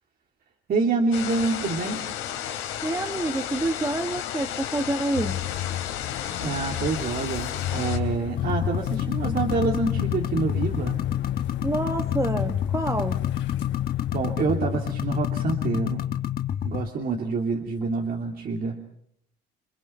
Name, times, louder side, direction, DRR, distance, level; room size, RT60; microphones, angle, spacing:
voice 1, 0.7-2.0 6.4-11.0 14.1-16.0 16.6-18.8, right 4 dB, 45° right, 1 dB, 3.0 m, -27 dB
sound 1, 1.1-8.0, left 10 dB, 80° left, 3.4 m, -33 dB
voice 2, 2.8-5.4 11.6-13.2, right 2 dB, 15° right, 6 dB, 1.5 m, -27 dB
sound 2, 5.1-15.7, left 12 dB, 65° left, 1.1 m, -33 dB
sound 3, 8.4-16.9, left 10 dB, 50° left, 1.3 m, -28 dB
29.0 x 23.5 x 5.9 m, 0.69 s
cardioid pair, 105°, 20 cm